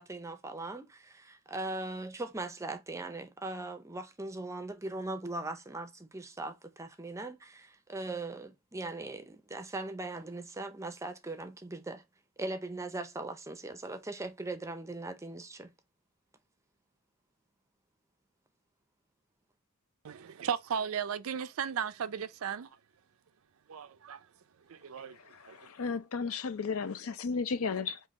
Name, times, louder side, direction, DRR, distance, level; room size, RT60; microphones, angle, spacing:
voice 1, 0.0-12.0 12.4-15.7, right 2 dB, 15° right, 0.5 m, -40 dB
voice 2, 20.0-22.7 23.7-24.3 24.7-25.2 25.5-25.7, right 7 dB, 65° right, 0.4 m, -36 dB
voice 3, 25.2-28.0, left 5 dB, 70° left, 0.5 m, -34 dB
3.7 x 2.8 x 4.1 m
head